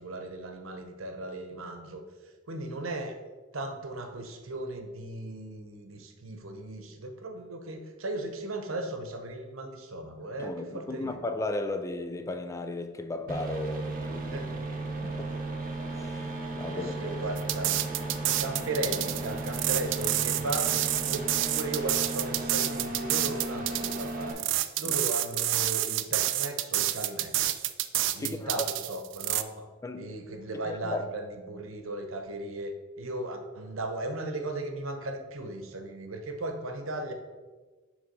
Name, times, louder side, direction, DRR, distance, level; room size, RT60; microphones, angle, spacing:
voice 1, 0.0-2.0 2.5-3.2 3.5-11.2 14.3-14.6 16.7-17.9 18.4-24.5 24.8-27.6 28.1-29.7 30.0-37.1, right 2 dB, 85° right, 0.8 m, -36 dB
voice 2, 10.4-14.4 15.0-15.4 15.9-17.3 24.8-25.0 28.2-28.7 29.8-30.2 30.6-31.0, left 2 dB, 15° left, 0.3 m, -35 dB
sound 1, 13.3-24.3, right 2 dB, 45° right, 0.9 m, -35 dB
sound 2, 17.4-29.4, right 14 dB, 65° right, 0.3 m, -28 dB
6.5 x 3.4 x 5.3 m
head